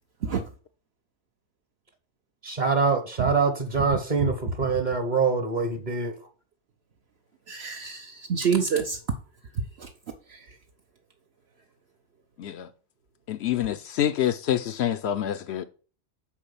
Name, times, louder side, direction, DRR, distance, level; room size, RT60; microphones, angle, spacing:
voice 1, 2.4-6.2, right 4 dB, 40° right, 1.2 m, -25 dB
voice 2, 7.5-9.0 9.8-9.9 10.3-10.4, right 6 dB, 65° right, 1.0 m, -27 dB
voice 3, 12.4-12.7 13.3-15.6, left 11 dB, 70° left, 0.8 m, -27 dB
7.3 x 4.8 x 7.0 m
omnidirectional pair, 1.2 m